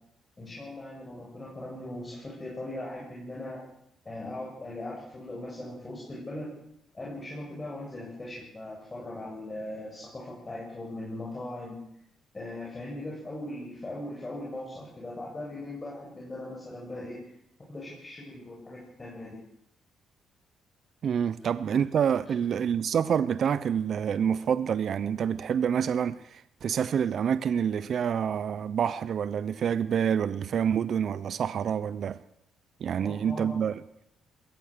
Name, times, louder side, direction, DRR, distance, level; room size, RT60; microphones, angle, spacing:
voice 1, 0.4-3.6 4.0-6.5 6.9-11.8 12.3-17.2 17.7-19.4 32.9-33.6, left 1 dB, 25° left, 7.9 m, -39 dB
voice 2, 21.0-32.2 32.8-33.8, right 8 dB, 60° right, 0.7 m, -27 dB
21.5 x 17.5 x 6.8 m
cardioid pair, 90°, 0 cm